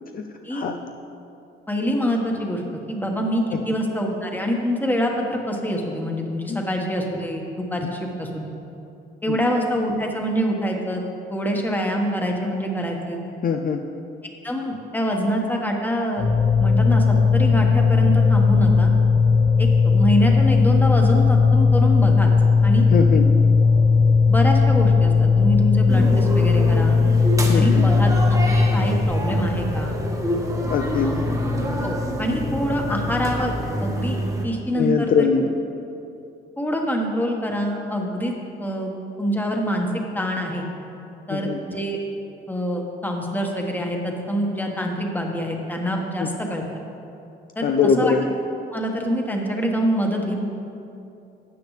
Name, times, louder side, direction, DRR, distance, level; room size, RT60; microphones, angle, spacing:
voice 1, 1.7-2.6 2.9-8.4 9.2-11.0 11.3-13.2 14.4-16.3 16.6-18.9 19.6-22.3 22.6-22.9 24.3-27.0 27.5-29.9 31.0-31.2 31.8-33.5 33.8-35.3 36.6-38.3 38.6-38.9 39.2-39.9 40.1-40.7 41.3-42.0 42.5-46.6 47.5-47.6 48.0-48.1 48.7-50.4, equal, 10° left, 1 dB, 1.4 m, -25 dB
voice 2, 13.4-13.8 22.9-23.3 27.5-27.9 30.7-31.1 34.8-35.5 41.3-41.6 46.2-46.3 47.6-48.3, left 5 dB, 45° left, 4 dB, 0.5 m, -22 dB
sound 1, 16.2-33.6, left 4 dB, 80° left, 2.4 m, -18 dB
sound 2, 25.9-34.5, right 1 dB, 15° right, 1.4 m, -28 dB
13.0 x 8.4 x 3.3 m, 2.8 s
cardioid pair, 90°, 20 cm